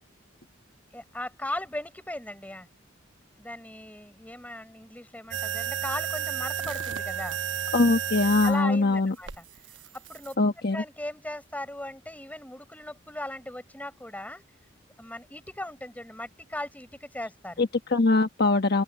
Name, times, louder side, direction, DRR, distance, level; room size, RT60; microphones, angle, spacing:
voice 1, 0.9-2.7 3.4-7.4 8.4-9.4 10.1-10.4 10.7-14.4 15.0-17.6, left 1 dB, 10° left, 5.0 m, -38 dB
sound 1, 5.3-8.6 9.3-10.3, right 8 dB, 65° right, 1.1 m, -32 dB
voice 2, 7.7-9.1 10.4-10.8 17.6-18.8, left 3 dB, 55° left, 1.2 m, -22 dB
open air
head